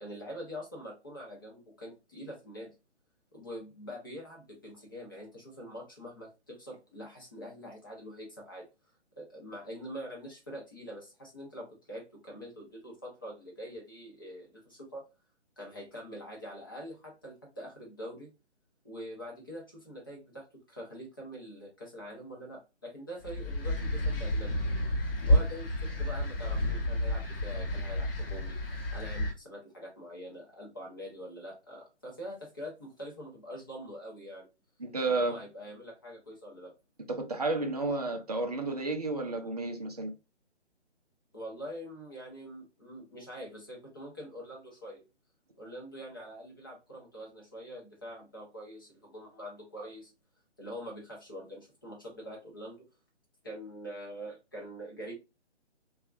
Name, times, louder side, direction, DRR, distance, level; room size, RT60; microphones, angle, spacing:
voice 1, 0.0-2.7 3.3-8.7 9.2-15.1 15.6-18.3 18.8-24.5 25.3-28.6 28.9-34.5 35.0-36.7 41.3-45.0 45.6-50.1 50.6-52.8 53.4-55.1, equal, 20° left, 0.6 m, -44 dB
sound 1, 23.2-29.3, left 1 dB, 55° left, 0.8 m, -30 dB
voice 2, 34.8-35.4 37.1-40.1, right 2 dB, 35° right, 0.5 m, -31 dB
2.9 x 2.3 x 2.4 m
figure-of-eight pair, 145°, 35 cm